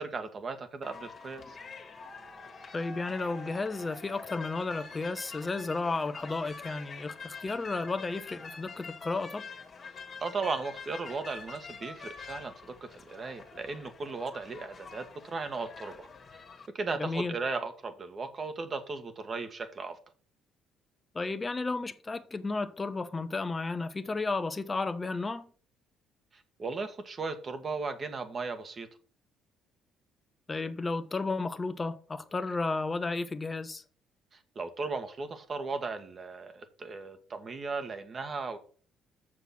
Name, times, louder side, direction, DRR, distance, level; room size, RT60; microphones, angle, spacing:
voice 1, 0.0-1.6 10.2-16.1 16.7-20.0 26.3-28.9 34.5-38.6, right 4 dB, 40° right, 1.7 m, -36 dB
sound 1, 0.8-16.7, left 4 dB, 45° left, 1.9 m, -46 dB
voice 2, 2.7-9.5 17.0-17.3 21.1-25.5 30.5-33.8, left 3 dB, 25° left, 1.0 m, -33 dB
6.8 x 6.3 x 6.0 m
hypercardioid pair, 55°, 0 cm